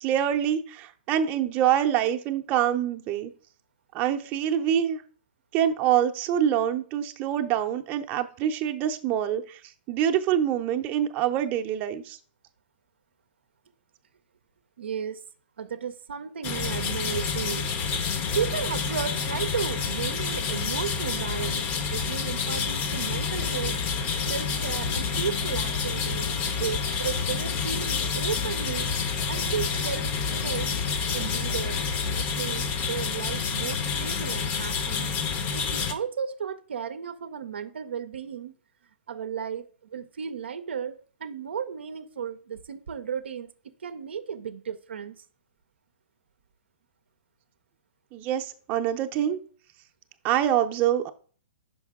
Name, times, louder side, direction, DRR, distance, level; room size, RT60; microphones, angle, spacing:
voice 1, 0.0-3.3 3.9-5.0 5.5-9.6 9.9-12.2 48.1-49.4 50.2-51.1, right 10 dB, 30° right, 0.6 m, -25 dB
voice 2, 14.8-15.2 15.6-17.7 18.3-23.8 24.2-26.3 26.6-28.9 29.3-30.1 30.4-30.7 31.1-31.8 32.1-35.1 35.5-38.5 39.1-45.3, right 7 dB, 80° right, 0.5 m, -34 dB
sound 1, 16.4-35.9, left 6 dB, 30° left, 0.7 m, -29 dB
Musical instrument, 23.1-32.3, left 4 dB, 60° left, 1.3 m, -36 dB
5.6 x 5.4 x 3.5 m
hypercardioid pair, 135°, 6 cm